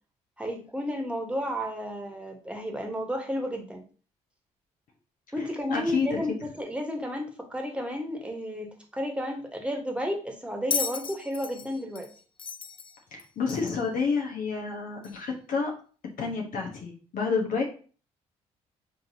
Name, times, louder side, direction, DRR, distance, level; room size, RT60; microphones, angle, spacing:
voice 1, 0.4-3.8 5.3-12.1, equal, 5° right, 3 dB, 1.4 m, -32 dB
voice 2, 5.7-6.4 13.4-15.7 16.2-17.6, left 5 dB, 60° left, 0 dB, 1.2 m, -29 dB
Bell, 10.7-13.9 15.0-15.1, left 5 dB, 35° left, 0.5 m, -34 dB
5.2 x 3.2 x 2.8 m, 0.40 s
hypercardioid pair, 50°, 16 cm